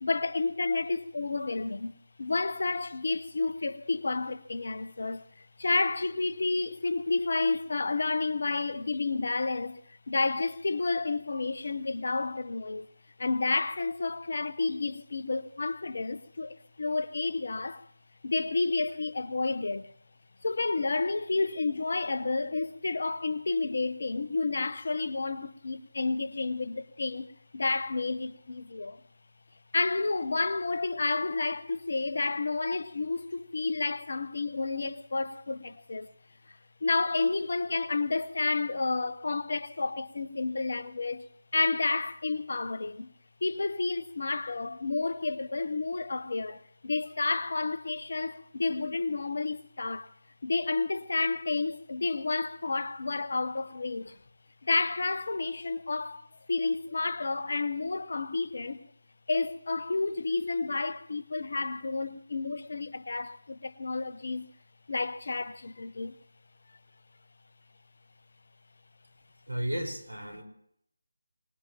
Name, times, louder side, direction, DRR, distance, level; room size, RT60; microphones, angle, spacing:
voice 1, 0.0-1.9 2.2-12.9 13.2-17.8 18.2-19.9 20.4-27.3 27.5-29.0 29.7-36.1 36.8-41.3 41.5-43.1 43.4-50.1 50.4-54.2 54.6-58.8 59.3-64.5 64.9-66.2, left 3 dB, 55° left, 0.9 m, -30 dB
voice 2, 69.5-70.4, right 1 dB, 85° right, 4.9 m, -33 dB
24.0 x 20.0 x 3.0 m
figure-of-eight pair, 160°, 0 cm